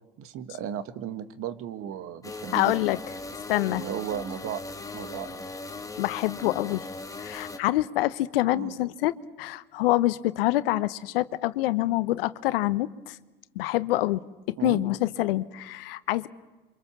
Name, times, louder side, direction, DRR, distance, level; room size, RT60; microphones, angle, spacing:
voice 1, 0.2-2.8 3.7-4.6 4.9-5.5 8.5-8.8 14.6-14.8, right 9 dB, 50° right, 12 dB, 1.9 m, -35 dB
sound 1, 2.2-7.6, left 3 dB, 10° left, 2.1 m, -39 dB
voice 2, 2.5-3.0 3.5-3.8 6.0-6.8 7.2-13.2 13.5-14.2 14.5-16.3, left 16 dB, 70° left, 16 dB, 1.0 m, -26 dB
28.5 x 25.0 x 7.4 m, 1.2 s
hypercardioid pair, 85°, 30 cm